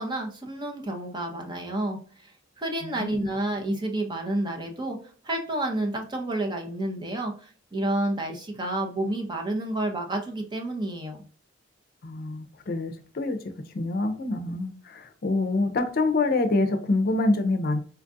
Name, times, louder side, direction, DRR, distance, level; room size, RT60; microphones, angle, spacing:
voice 1, 0.0-2.3 2.6-5.0 5.2-11.2, right 1 dB, 25° right, 0.7 m, -30 dB
voice 2, 2.8-3.3 12.0-13.4 13.7-17.8, left 2 dB, 50° left, 0.5 m, -26 dB
4.4 x 2.4 x 2.5 m
head